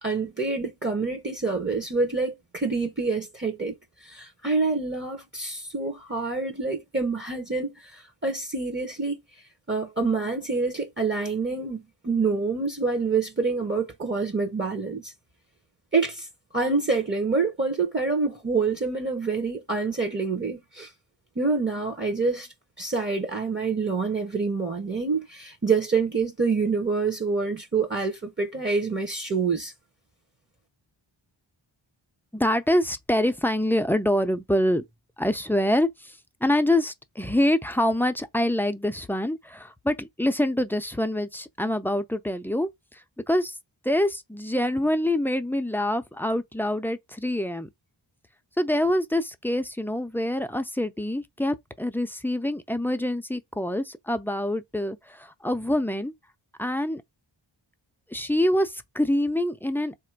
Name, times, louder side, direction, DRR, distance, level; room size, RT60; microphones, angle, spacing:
voice 1, 0.0-3.8 4.0-9.2 9.7-15.1 15.9-16.3 16.5-20.9 21.4-22.5 22.8-29.7, right 4 dB, 25° right, 0.7 m, -27 dB
voice 2, 32.3-34.8 35.2-35.9 36.4-42.7 43.3-43.5 43.8-47.7 48.6-56.1 56.6-57.0 58.1-60.0, left 1 dB, 5° left, 0.4 m, -25 dB
3.6 x 2.5 x 4.5 m
wide cardioid pair, 85°, 47 cm